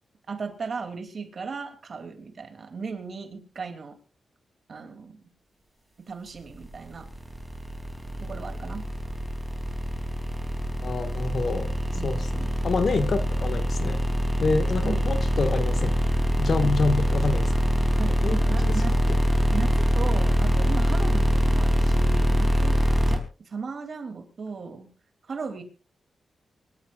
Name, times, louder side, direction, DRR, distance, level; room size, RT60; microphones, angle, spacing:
voice 1, 0.3-4.0 4.7-5.3 6.1-7.1 8.2-8.8 11.9-12.5 14.8-15.1 16.6-16.7 18.0-19.1 19.5-24.9 25.3-25.6, right 5 dB, 50° right, 3.2 m, -36 dB
sound 1, 6.6-23.2, equal, 10° right, 3.5 m, -24 dB
voice 2, 10.8-11.7 12.0-12.2 12.6-14.0 14.4-15.9 16.4-17.5 18.2-18.8, left 4 dB, 55° left, 1.9 m, -27 dB
25.0 x 13.0 x 2.6 m
wide cardioid pair, 115°, 0 cm